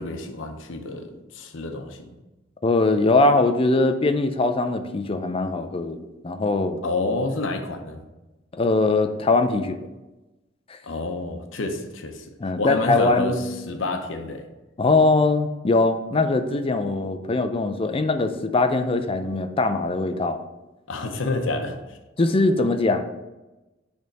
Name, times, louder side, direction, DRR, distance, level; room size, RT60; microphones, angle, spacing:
voice 1, 0.0-2.1 6.8-8.0 10.8-12.3 12.6-13.4 13.7-14.5 20.9-22.0, left 2 dB, 85° left, 6 dB, 0.7 m, -29 dB
voice 2, 2.6-6.8 8.5-9.9 10.7-10.8 12.4-13.4 14.8-20.4 22.2-23.0, left 3 dB, 30° left, 8 dB, 0.5 m, -21 dB
6.5 x 3.5 x 5.3 m, 1.1 s
head